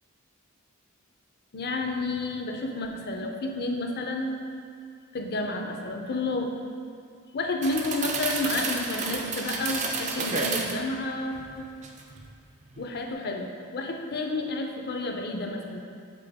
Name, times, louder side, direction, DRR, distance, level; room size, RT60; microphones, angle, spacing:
voice 1, 1.5-4.4 5.1-6.5 7.3-11.7 12.8-15.8, left 2 dB, 45° left, 3 dB, 0.5 m, -30 dB
sound 1, 7.6-10.8 11.3-12.3 12.6-12.8, right 4 dB, 35° right, 0.4 m, -31 dB
6.7 x 4.2 x 3.5 m, 2.3 s
head